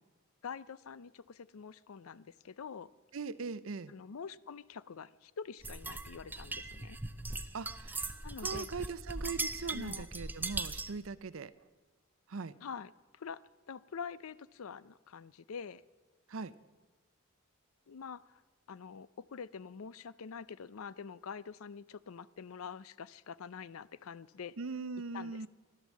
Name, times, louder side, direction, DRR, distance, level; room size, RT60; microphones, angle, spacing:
voice 1, 0.4-2.9 3.9-7.0 8.2-8.7 9.7-10.1 12.6-15.8 17.9-18.4 18.7-24.6 25.1-25.5, left 6 dB, 80° left, 18 dB, 0.5 m, -46 dB
voice 2, 3.1-3.9 7.5-11.5 12.3-12.6 16.3-16.5 24.6-25.5, right 4 dB, 70° right, 16 dB, 0.6 m, -41 dB
sound 1, 5.6-11.0, right 3 dB, 10° right, 0.5 m, -39 dB
14.5 x 12.0 x 7.4 m, 1.3 s
head